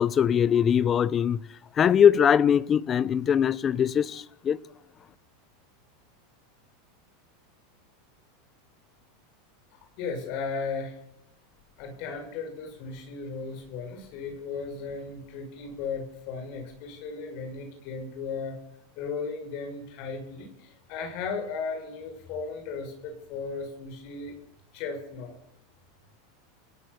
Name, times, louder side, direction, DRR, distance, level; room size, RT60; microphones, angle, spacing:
voice 1, 0.0-1.4 1.8-4.6, left 8 dB, 30° left, 1.0 m, -22 dB
voice 2, 10.0-11.0 11.8-18.6 18.9-24.3 24.7-25.4, left 5 dB, 60° left, 6.6 m, -36 dB
29.5 x 16.5 x 7.1 m
hypercardioid pair, 115°, 0 cm